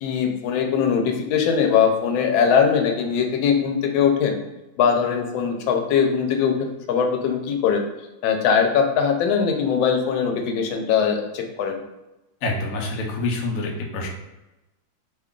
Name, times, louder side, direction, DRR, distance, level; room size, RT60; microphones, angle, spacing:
voice 1, 0.0-4.4 4.8-6.6 6.9-7.9 8.2-11.8, left 7 dB, 90° left, 4 dB, 1.4 m, -21 dB
voice 2, 12.4-14.1, left 2 dB, 70° left, 0 dB, 0.8 m, -26 dB
3.2 x 2.3 x 3.6 m, 0.99 s
omnidirectional pair, 2.1 m